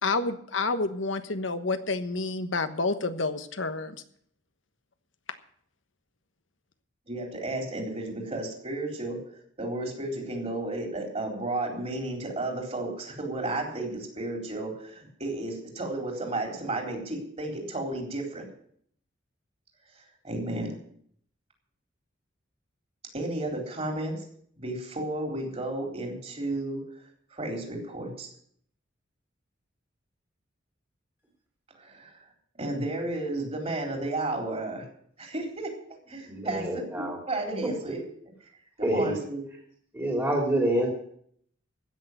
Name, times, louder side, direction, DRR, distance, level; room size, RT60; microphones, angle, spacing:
voice 1, 0.0-4.0, left 3 dB, 75° left, 9 dB, 1.2 m, -29 dB
voice 2, 7.1-9.2 9.6-18.5 20.2-20.7 23.1-24.2 24.6-26.9 27.3-28.3 31.8-32.2 32.6-34.9 35.2-38.0 38.8-39.4, right 2 dB, 35° right, 2 dB, 3.9 m, -33 dB
voice 3, 36.2-37.2 37.6-38.0 38.8-39.2 39.9-40.9, right 1 dB, 15° right, -1 dB, 2.8 m, -27 dB
16.0 x 6.7 x 9.2 m, 0.65 s
head